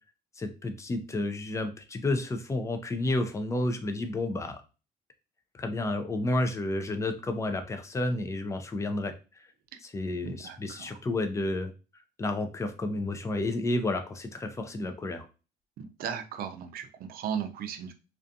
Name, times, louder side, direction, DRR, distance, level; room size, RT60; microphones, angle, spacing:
voice 1, 0.4-4.6 5.5-9.1 9.8-11.7 12.2-15.2, left 2 dB, 15° left, 7 dB, 0.4 m, -31 dB
voice 2, 10.2-10.9 15.8-17.9, right 8 dB, 60° right, 7 dB, 0.5 m, -36 dB
2.4 x 2.3 x 2.6 m, 0.32 s
cardioid pair, 110°, 17 cm